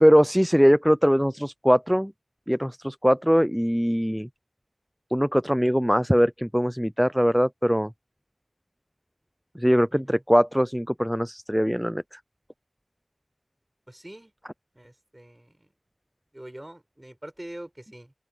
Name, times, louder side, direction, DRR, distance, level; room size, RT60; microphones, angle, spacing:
voice 1, 0.0-2.1 2.5-4.3 5.1-7.9 9.6-12.2, equal, 5° right, 0.4 m, -21 dB
voice 2, 9.9-10.2 13.9-14.3 14.7-15.7 16.3-18.1, right 1 dB, 20° right, 4.9 m, -44 dB
open air
wide cardioid pair, 60°, 0 cm